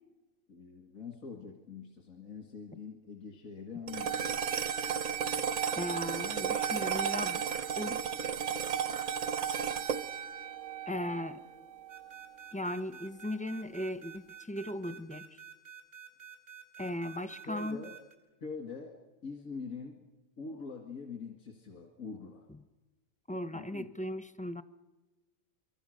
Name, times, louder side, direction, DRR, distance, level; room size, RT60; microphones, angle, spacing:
voice 1, 0.5-4.5 17.5-17.9 18.4-20.0 20.4-22.5 23.5-23.9, left 5 dB, 90° left, 2 dB, 2.3 m, -44 dB
sound 1, 3.9-12.4, right 8 dB, 65° right, 1.3 m, -34 dB
voice 2, 5.7-7.4 7.8-8.0 10.9-11.4 12.5-15.3 16.8-17.8 23.3-24.6, left 1 dB, 10° left, 12 dB, 0.3 m, -37 dB
sound 2, 11.9-18.1, right 9 dB, 85° right, 5.6 m, -49 dB
25.0 x 24.0 x 6.5 m, 1.1 s
omnidirectional pair, 1.4 m